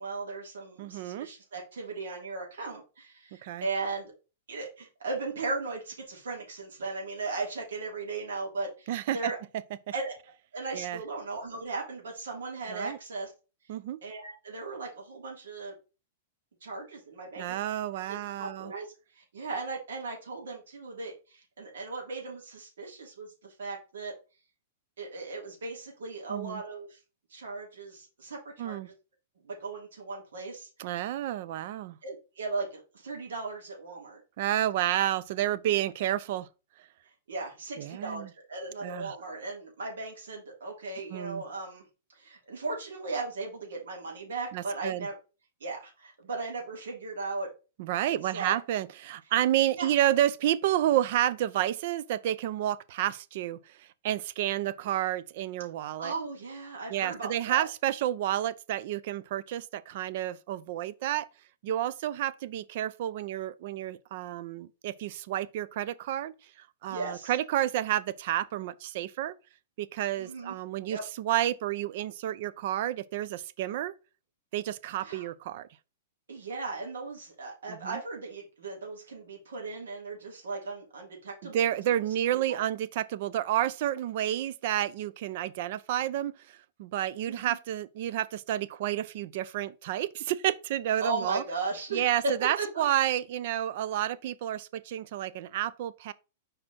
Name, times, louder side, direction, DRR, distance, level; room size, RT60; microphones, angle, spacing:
voice 1, 0.0-4.1 4.5-9.4 9.9-10.1 10.5-13.3 14.0-15.7 16.6-17.6 18.1-24.1 25.0-27.0 27.3-28.9 29.4-30.7 32.0-34.2 37.3-41.8 42.1-45.1 45.6-47.5 48.1-48.5 49.7-49.9 56.0-57.7 66.9-67.3 70.2-70.5 70.9-71.0 75.0-75.3 76.3-81.7 82.3-82.6 87.3-87.6 91.0-92.8, right 3 dB, 90° right, 3.3 m, -37 dB
voice 2, 0.8-1.3 3.4-3.7 8.9-9.3 10.7-11.0 12.7-13.0 13.7-14.0 17.4-18.7 26.3-26.6 28.6-28.9 30.8-32.0 34.4-36.5 37.8-38.3 38.8-39.2 41.1-41.4 44.5-45.1 47.8-56.1 56.9-61.3 61.6-69.3 69.8-73.9 74.5-75.7 77.7-78.0 81.4-91.4 91.9-96.1, right 12 dB, 55° right, 0.5 m, -30 dB
4.9 x 4.3 x 4.4 m
hypercardioid pair, 150°, 0 cm